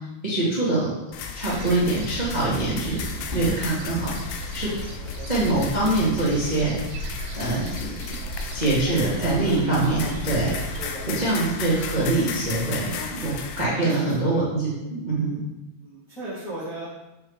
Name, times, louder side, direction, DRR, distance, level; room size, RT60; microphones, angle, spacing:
voice 1, 0.2-0.9 1.3-3.0 3.3-4.7 5.3-7.9 8.5-10.0 10.3-15.4, right 2 dB, 30° right, -8 dB, 0.8 m, -24 dB
sound 1, 1.1-13.6, left 5 dB, 80° left, 2.5 m, -35 dB
sound 2, 1.5-10.9, right 1 dB, 75° right, 3.0 m, -36 dB
voice 2, 2.8-3.4 5.0-5.5 8.9-11.2 13.8-14.4 15.8-16.9, right 1 dB, 40° left, -9 dB, 1.2 m, -37 dB
8.2 x 6.4 x 3.5 m, 0.98 s
omnidirectional pair, 4.6 m